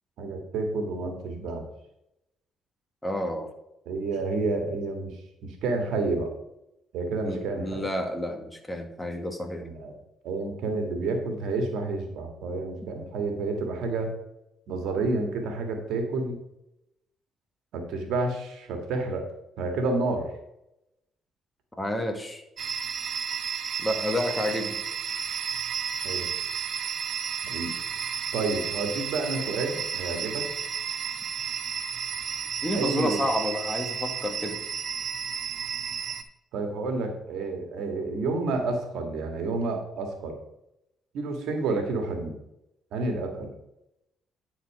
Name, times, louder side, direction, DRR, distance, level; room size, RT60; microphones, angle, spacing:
voice 1, 0.2-1.7 3.9-6.3 6.9-7.9 9.6-10.0 10.2-14.1 14.7-16.4 17.7-19.3 19.6-20.3 26.0-26.3 27.4-27.7 28.3-30.5 32.7-33.2 36.5-40.4 41.1-42.4 42.9-43.5, right 3 dB, 75° right, 4 dB, 1.8 m, -30 dB
voice 2, 3.0-3.5 7.2-9.7 21.8-22.4 23.8-24.8 32.6-34.6, left 1 dB, 15° left, 4 dB, 1.8 m, -30 dB
sound 1, 22.6-36.2, right 7 dB, 60° right, 0.7 m, -32 dB
10.0 x 4.4 x 4.8 m, 0.85 s
supercardioid pair, 55°, 0 cm